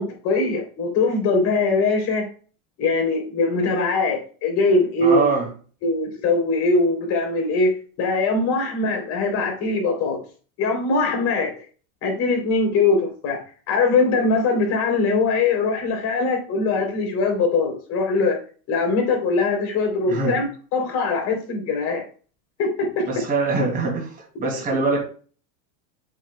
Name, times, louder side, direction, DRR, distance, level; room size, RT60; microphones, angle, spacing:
voice 1, 0.0-2.2 2.8-5.3 5.8-7.7 8.0-10.2 10.6-11.5 12.0-13.4 13.7-18.4 18.7-22.0 22.6-23.1, left 3 dB, 40° left, 3 dB, 3.3 m, -21 dB
voice 2, 5.0-5.5 20.1-20.4 23.1-24.1 24.4-25.0, right 3 dB, 20° right, 1 dB, 2.5 m, -23 dB
7.6 x 7.0 x 2.2 m, 0.39 s
supercardioid pair, 150°, 41 cm